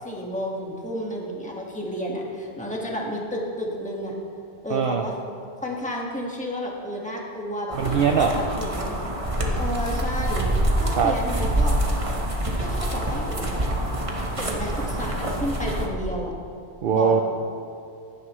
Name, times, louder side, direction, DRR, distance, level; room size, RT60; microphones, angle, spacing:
voice 1, 0.0-4.1 4.6-5.1 5.6-7.8 8.1-9.0 9.6-11.7 12.6-13.6 14.4-16.3 16.9-17.2, equal, 5° left, -2 dB, 1.6 m, -31 dB
voice 2, 4.7-5.0 7.7-8.3 10.9-11.1 16.8-17.2, right 6 dB, 60° right, 4 dB, 0.7 m, -21 dB
sound 1, 7.7-15.9, right 1 dB, 30° right, 1.2 m, -26 dB
16.0 x 11.5 x 3.1 m, 2.4 s
omnidirectional pair, 1.2 m